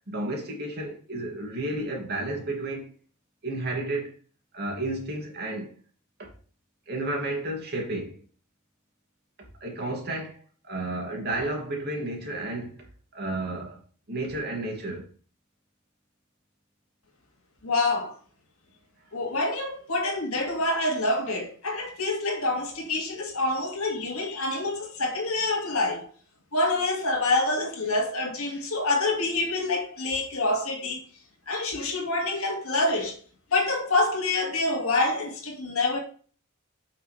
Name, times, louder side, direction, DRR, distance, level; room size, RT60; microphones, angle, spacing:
voice 1, 0.1-2.9 3.4-4.1 4.5-5.7 6.2-6.3 6.9-8.2 9.6-10.4 10.6-12.9 13.1-13.8 14.1-15.1, right 2 dB, 50° right, 2.7 m, -32 dB
voice 2, 17.6-18.2 19.1-26.1 26.5-31.0 31.5-33.2 33.5-36.0, left 2 dB, 75° left, 2.3 m, -26 dB
9.2 x 5.8 x 3.4 m
head